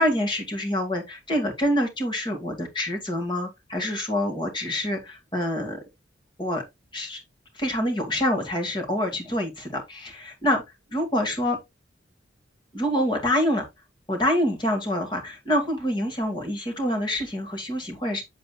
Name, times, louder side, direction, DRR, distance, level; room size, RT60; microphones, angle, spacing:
voice 1, 0.0-5.8 6.4-6.6 6.9-7.2 7.5-10.6 10.9-11.6 12.7-13.7 14.1-18.2, left 1 dB, 25° left, 2.3 m, -26 dB
7.8 x 7.7 x 2.4 m
head